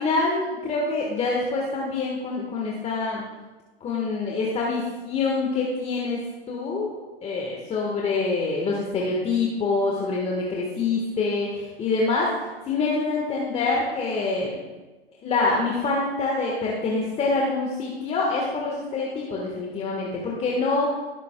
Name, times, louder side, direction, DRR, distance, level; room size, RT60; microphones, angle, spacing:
voice 1, 0.0-3.2 3.8-6.2 6.5-6.9 7.2-12.3 12.6-14.6 15.2-20.9, left 3 dB, 20° left, -2 dB, 1.5 m, -25 dB
17.0 x 8.1 x 2.3 m, 1.2 s
hypercardioid pair, 115°, 31 cm